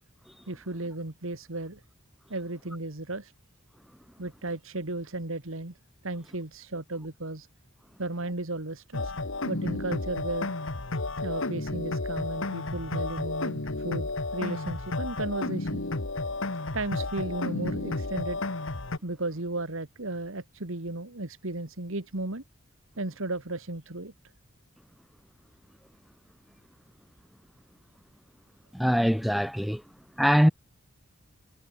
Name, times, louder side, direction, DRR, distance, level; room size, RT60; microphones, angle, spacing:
voice 1, 0.5-1.8 2.3-3.3 4.2-5.7 6.0-7.5 8.0-9.1 9.4-10.5 11.2-15.8 16.7-18.4 19.0-22.4 23.0-24.1, right 2 dB, 70° right, 2.0 m, -34 dB
sound 1, 8.9-19.0, left 2 dB, 65° left, 1.7 m, -32 dB
voice 2, 28.7-29.8 30.2-30.5, equal, ahead, 1.2 m, -22 dB
head